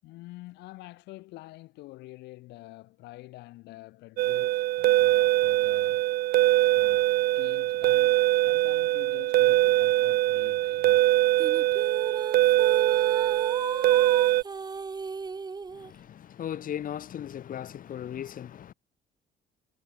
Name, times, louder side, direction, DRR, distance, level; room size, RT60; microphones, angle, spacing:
voice 1, 0.0-6.1 6.7-11.0, left 19 dB, 85° left, 7.1 m, -47 dB
sound 1, 4.2-14.4, right 17 dB, 65° right, 0.4 m, -23 dB
sound 2, 11.4-15.9, right 4 dB, 25° right, 2.4 m, -36 dB
voice 2, 15.7-18.7, left 10 dB, 55° left, 4.7 m, -37 dB
cardioid pair, 110°, 17 cm